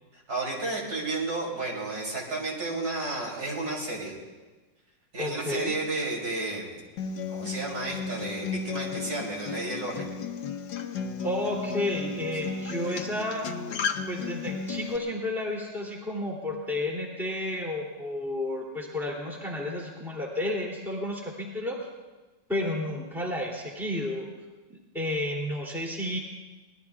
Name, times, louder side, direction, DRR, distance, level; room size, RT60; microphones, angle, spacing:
voice 1, 0.1-4.2 5.1-6.8 7.3-10.1, right 2 dB, 55° right, -3 dB, 3.5 m, -32 dB
voice 2, 5.2-5.7 11.2-13.5 14.1-21.8 22.5-24.3 24.7-26.2, left 1 dB, ahead, -2 dB, 2.6 m, -31 dB
Acoustic guitar, 7.0-15.0, left 5 dB, 75° left, 1.5 m, -34 dB
25.0 x 19.0 x 2.4 m, 1.2 s
omnidirectional pair, 2.0 m